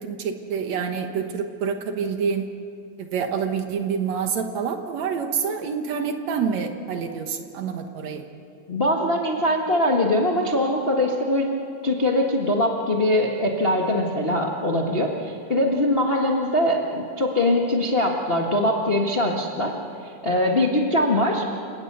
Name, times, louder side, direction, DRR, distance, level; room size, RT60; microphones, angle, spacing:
voice 1, 0.0-2.5 3.0-8.2, right 6 dB, 65° right, 6 dB, 2.2 m, -27 dB
voice 2, 8.7-11.5 11.8-19.7 20.0-21.5, left 1 dB, 35° left, 0 dB, 1.0 m, -22 dB
29.5 x 18.0 x 6.8 m, 2.6 s
omnidirectional pair, 3.8 m